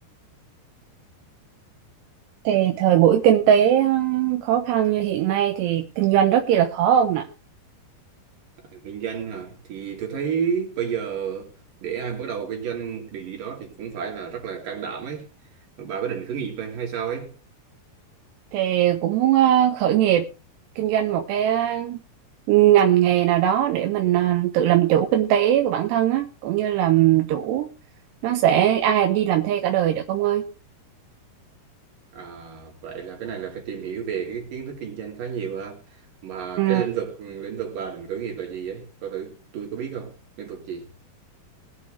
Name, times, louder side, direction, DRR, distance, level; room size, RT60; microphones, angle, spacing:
voice 1, 2.4-7.3 18.5-20.3 20.8-22.0 22.5-27.7 28.2-30.4 36.6-36.8, right 11 dB, 85° right, 3.2 m, -20 dB
voice 2, 8.7-11.5 11.8-15.3 15.8-17.3 32.1-35.8 36.2-40.9, right 7 dB, 55° right, 4.5 m, -31 dB
20.5 x 8.5 x 3.3 m
omnidirectional pair, 4.8 m